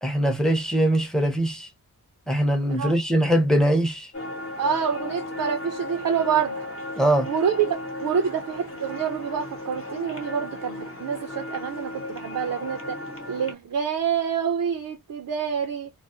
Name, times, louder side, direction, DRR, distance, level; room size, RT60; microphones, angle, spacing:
voice 1, 0.0-1.7 2.3-4.1 7.0-7.3, right 1 dB, ahead, 0.6 m, -22 dB
sound 1, 4.1-13.5, left 2 dB, 40° left, 0.9 m, -35 dB
voice 2, 4.6-6.5 7.3-13.0 13.3-15.9, right 7 dB, 65° right, 0.5 m, -27 dB
2.3 x 2.0 x 2.6 m
wide cardioid pair, 120°, 35 cm